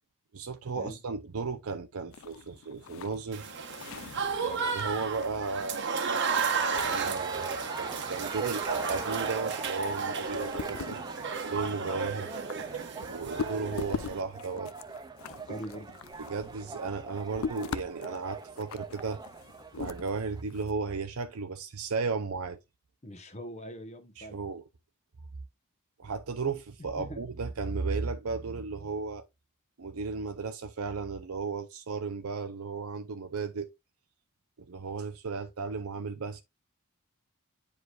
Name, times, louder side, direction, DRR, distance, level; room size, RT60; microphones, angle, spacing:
voice 1, 0.3-3.6 4.0-4.1 4.4-5.9 6.7-11.0 11.4-12.3 13.1-14.7 16.2-19.2 19.8-22.6 24.2-24.6 26.0-29.2 29.8-33.7 34.7-36.4, right 4 dB, 70° right, 0.6 m, -35 dB
sound 1, 2.1-20.7, left 5 dB, 65° left, 0.4 m, -43 dB
Applause / Crowd, 3.3-14.2, right 5 dB, 55° right, 1.1 m, -33 dB
sound 2, 6.0-20.4, right 4 dB, 20° right, 0.3 m, -42 dB
voice 2, 15.2-16.0 23.0-24.4 27.0-27.2, equal, 30° left, 1.1 m, -42 dB
9.5 x 4.8 x 2.4 m
head